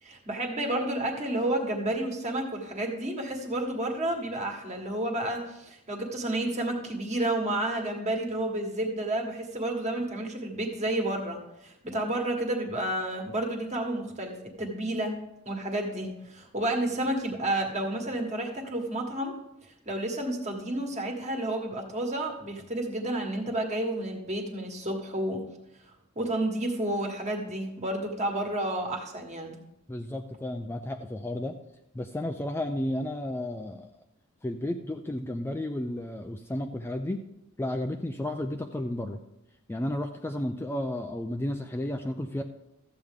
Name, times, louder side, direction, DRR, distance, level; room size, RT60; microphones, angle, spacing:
voice 1, 0.0-15.2 15.4-19.3 19.8-25.4 26.1-29.6, right 1 dB, 35° right, 2 dB, 1.6 m, -31 dB
voice 2, 29.9-31.6 31.9-33.9 34.4-37.2 37.6-39.2 39.7-42.4, left 1 dB, 10° left, 5 dB, 0.4 m, -32 dB
13.5 x 7.8 x 3.6 m, 0.85 s
head